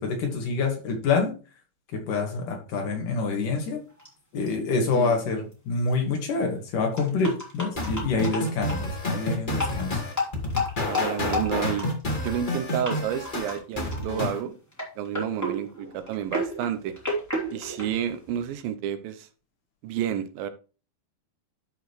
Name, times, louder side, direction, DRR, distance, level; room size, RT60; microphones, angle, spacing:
voice 1, 0.0-1.3 1.9-3.8 4.3-10.0, left 4 dB, 60° left, 2 dB, 3.3 m, -27 dB
sound 1, 4.0-4.1 4.5-4.6 5.5-5.6 5.9-6.0 7.0-8.8 9.5-9.8 10.1-12.5 12.8-12.9 13.2-13.6 13.9-14.3 14.7-18.5, left 2 dB, 5° left, 2.4 m, -32 dB
sound 2, 7.7-14.4, left 1 dB, 80° left, 0.4 m, -29 dB
voice 2, 10.8-11.9 12.2-14.6 15.0-17.0 17.5-19.3 19.8-20.5, right 9 dB, 80° right, 10 dB, 2.5 m, -30 dB
12.5 x 5.1 x 3.2 m, 0.35 s
omnidirectional pair, 4.3 m